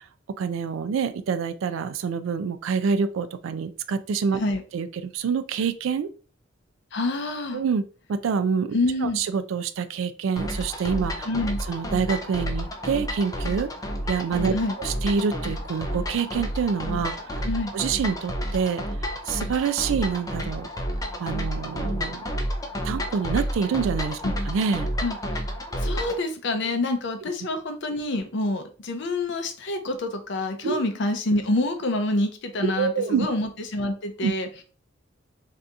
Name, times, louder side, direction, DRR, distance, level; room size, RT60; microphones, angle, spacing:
voice 1, 0.4-4.4 4.7-6.1 7.5-11.2 11.7-13.7 14.1-14.5 14.8-17.2 17.7-18.8 19.3-20.7 21.2-22.2 22.8-24.2 24.5-24.9 30.6-30.8 32.6-33.3 34.2-34.3, right 6 dB, 75° right, 12 dB, 0.3 m, -26 dB
voice 2, 6.9-7.6 8.7-9.2 11.2-11.6 14.5-14.8 17.4-17.7 24.2-24.4 25.0-25.2 25.8-34.5, left 2 dB, 60° left, 6 dB, 0.6 m, -27 dB
sound 1, 10.4-26.2, equal, 20° left, 0.4 m, -30 dB
2.7 x 2.5 x 3.5 m, 0.38 s
head